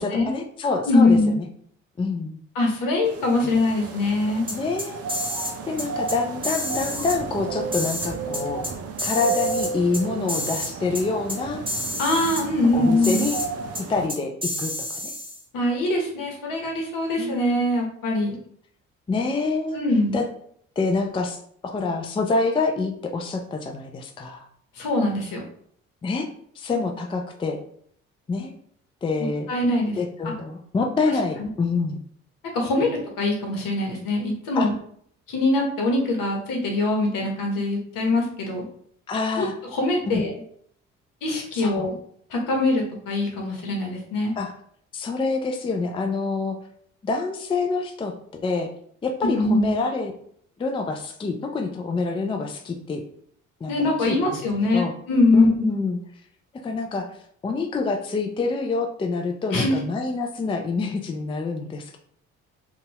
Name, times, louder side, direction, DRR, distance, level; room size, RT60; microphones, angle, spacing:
voice 1, 0.0-1.5 2.0-2.4 4.5-5.0 5.7-8.6 9.0-11.6 12.7-13.4 13.9-14.7 15.0-15.1 17.2-17.7 19.1-19.8 20.1-20.2 20.8-21.4 21.6-24.5 26.0-26.3 26.6-27.6 28.3-28.5 29.0-29.5 30.0-32.0 34.6-34.7 39.1-39.5 40.1-40.2 41.6-41.9 44.4-44.6 44.9-46.6 47.0-48.7 49.0-50.1 50.6-53.0 53.6-54.4 54.7-54.9 55.3-56.0 56.5-57.1 57.4-62.0, left 3 dB, 15° left, 4 dB, 0.4 m, -26 dB
voice 2, 0.9-1.4 2.5-4.5 12.0-13.3 15.5-18.4 19.7-20.2 24.8-25.4 29.5-30.0 30.2-30.3 31.4-31.5 32.5-32.9 33.2-34.7 35.3-38.6 39.3-39.5 39.7-40.4 41.2-41.9 42.3-44.3 49.2-49.7 53.7-55.7 59.5-59.7, left 2 dB, 65° left, 0 dB, 1.0 m, -22 dB
sound 1, 3.0-14.1, right 4 dB, 45° right, 0.5 m, -33 dB
sound 2, 4.5-5.5 5.8-6.2 6.4-7.2 7.7-8.7 9.0-10.0 10.3-10.7 10.9-11.0 11.3-11.4 11.7-12.4 13.0-13.5 13.7-13.8 14.1-15.4, left 1 dB, 15° right, 1.4 m, -29 dB
2.7 x 2.4 x 2.9 m, 0.63 s
hypercardioid pair, 55°, 36 cm